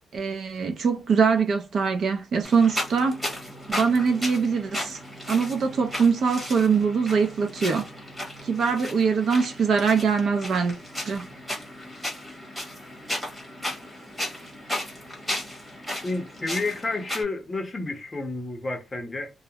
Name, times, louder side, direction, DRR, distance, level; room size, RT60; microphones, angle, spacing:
voice 1, 0.1-3.2 3.7-5.0 5.3-7.9 8.4-10.8 11.0-11.3, right 5 dB, 50° right, 0.5 m, -23 dB
sound 1, 2.4-17.2, left 1 dB, ahead, 1.2 m, -35 dB
voice 2, 16.0-19.3, left 3 dB, 20° left, 0.7 m, -30 dB
2.4 x 2.0 x 2.8 m
wide cardioid pair, 180°, 0 cm